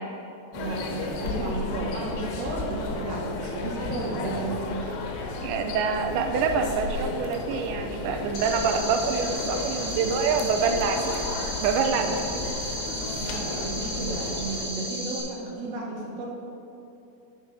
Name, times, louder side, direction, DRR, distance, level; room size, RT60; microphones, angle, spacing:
sound 1, 0.5-14.7, left 3 dB, 85° left, 3.0 m, -34 dB
voice 1, 0.5-4.6 12.0-12.2 13.1-16.3, right 2 dB, 65° right, -3 dB, 2.9 m, -33 dB
voice 2, 5.4-11.3 11.6-12.4, right 5 dB, 90° right, 5 dB, 2.8 m, -26 dB
sound 2, 8.3-15.2, equal, 55° left, 2.4 m, -34 dB
7.2 x 6.8 x 5.3 m, 2.9 s
omnidirectional pair, 5.0 m